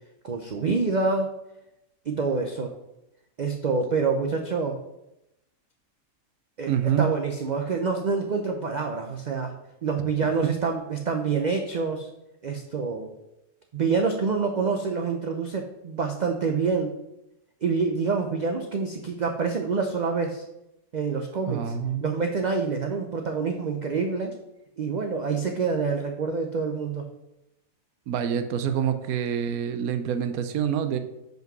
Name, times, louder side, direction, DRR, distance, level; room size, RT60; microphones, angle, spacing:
voice 1, 0.2-1.3 2.1-2.7 3.4-4.8 6.6-6.7 7.0-9.5 9.8-12.1 12.4-13.1 13.7-17.0 17.6-20.5 20.9-21.7 22.0-24.4 24.8-27.1, right 4 dB, 60° right, 4 dB, 0.4 m, -27 dB
voice 2, 6.7-7.1 21.4-22.1 28.1-31.0, right 8 dB, 90° right, 9 dB, 1.1 m, -26 dB
5.2 x 5.2 x 5.9 m, 0.90 s
omnidirectional pair, 1.5 m